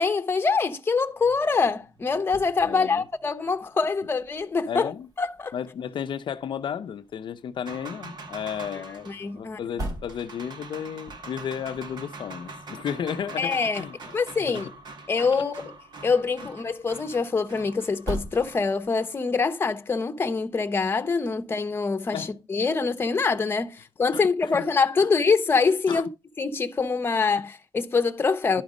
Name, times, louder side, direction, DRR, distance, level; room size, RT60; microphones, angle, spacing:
voice 1, 0.0-4.9 5.2-5.5 9.1-9.6 13.4-13.8 14.1-14.7 15.1-15.7 16.0-26.1 26.4-28.6, left 4 dB, 25° left, 0.9 m, -25 dB
sound 1, 1.0-19.1, right 1 dB, 50° right, 3.2 m, -44 dB
voice 2, 2.6-3.0 4.7-5.1 5.5-14.7 22.1-22.3 24.1-24.5 25.9-26.0, left 8 dB, 75° left, 0.6 m, -33 dB
sound 2, 7.7-19.3, right 3 dB, 65° right, 1.3 m, -44 dB
11.5 x 5.2 x 4.9 m
wide cardioid pair, 180°, 8 cm